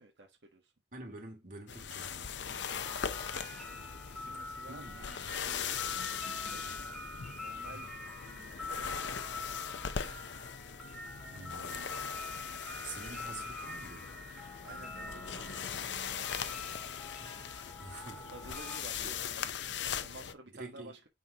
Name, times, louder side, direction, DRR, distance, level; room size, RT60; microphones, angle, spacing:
voice 1, 0.0-0.7 2.4-2.8 4.1-6.7 7.4-9.0 9.8-10.1 12.8-13.3 14.6-17.1 17.4-17.8 18.3-21.1, right 2 dB, 75° right, 1.3 m, -54 dB
voice 2, 0.9-2.3 4.7-5.0 7.6-7.8 11.3-12.0 12.5-12.6 12.8-14.1 17.2-17.3 17.8-18.3 19.0-19.2 20.5-21.0, right 2 dB, 50° right, 2.8 m, -47 dB
sound 1, 1.7-20.3, left 7 dB, 80° left, 0.7 m, -40 dB
sound 2, 2.5-18.8, left 2 dB, ahead, 2.3 m, -45 dB
9.6 x 4.4 x 2.9 m
head